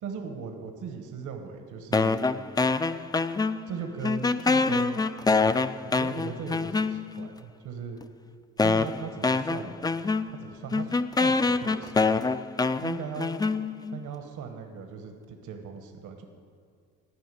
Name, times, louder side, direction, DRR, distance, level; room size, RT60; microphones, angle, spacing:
voice 1, 0.0-2.3 3.7-5.1 5.8-8.0 8.6-9.7 10.3-12.1 12.8-13.3 13.9-16.2, right 6 dB, 80° right, 5 dB, 1.3 m, -38 dB
sound 1, 1.9-3.8 4.0-7.3 8.0-8.1 8.6-14.0, left 3 dB, 15° left, 0.3 m, -26 dB
13.0 x 6.0 x 9.1 m, 2.2 s
cardioid pair, 90°, 30 cm